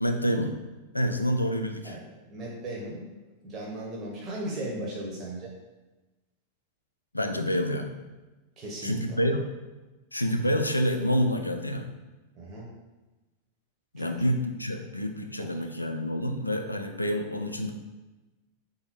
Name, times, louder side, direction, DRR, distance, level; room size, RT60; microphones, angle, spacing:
voice 1, 0.0-0.6 0.9-2.0 7.1-7.9 8.8-9.4 10.1-11.9 13.9-17.7, equal, 85° left, 5 dB, 0.3 m, -27 dB
voice 2, 1.8-3.0 3.4-5.5 8.6-9.2 12.3-12.7 14.0-14.1 15.4-15.5, right 1 dB, 30° right, -4 dB, 0.9 m, -37 dB
3.6 x 2.7 x 4.4 m, 1.1 s
figure-of-eight pair, 90°, 0 cm